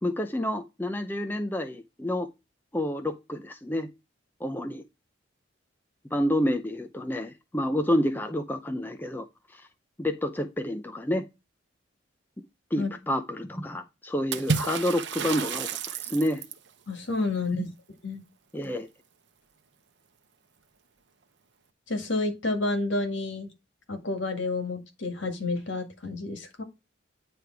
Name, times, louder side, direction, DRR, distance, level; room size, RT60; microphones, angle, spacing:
voice 1, 0.0-2.3 2.7-3.9 4.4-4.8 6.1-9.3 9.5-9.6 10.0-11.3 12.7-16.4 17.5-17.6 18.5-18.9, left 1 dB, 10° left, 0.5 m, -29 dB
Water / Splash splatter, 14.3-16.7, right 5 dB, 65° right, 0.8 m, -30 dB
voice 2, 16.9-17.7 18.0-18.2 21.9-23.5 23.9-26.6, left 3 dB, 70° left, 1.9 m, -30 dB
9.6 x 3.4 x 4.7 m
head